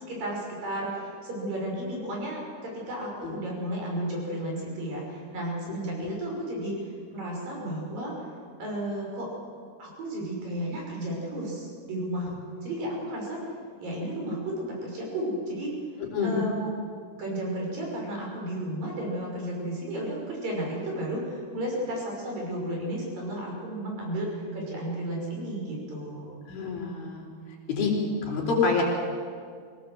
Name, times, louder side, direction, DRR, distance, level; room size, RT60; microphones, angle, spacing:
voice 1, 0.1-6.8 7.1-8.1 8.6-9.3 9.8-12.3 12.6-13.4 13.8-15.7 16.2-16.7 17.1-26.4, right 1 dB, 50° right, -1 dB, 7.4 m, -33 dB
voice 2, 26.5-27.3 27.7-27.9 28.2-28.8, left 5 dB, 55° left, -1 dB, 5.7 m, -27 dB
25.0 x 17.5 x 7.7 m, 2.1 s
omnidirectional pair, 5.1 m